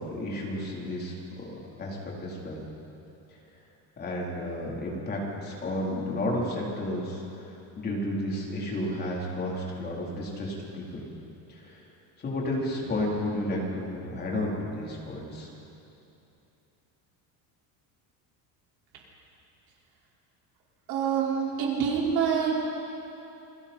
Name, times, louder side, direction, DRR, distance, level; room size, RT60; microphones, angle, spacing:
voice 1, 0.0-1.4 1.8-2.6 4.0-11.0 11.5-11.8 12.2-15.5, left 1 dB, 25° left, -3 dB, 3.9 m, -32 dB
voice 2, 20.9-22.6, right 7 dB, 60° right, -4 dB, 5.2 m, -26 dB
29.0 x 21.0 x 4.5 m, 2.8 s
cardioid pair, 170°, 41 cm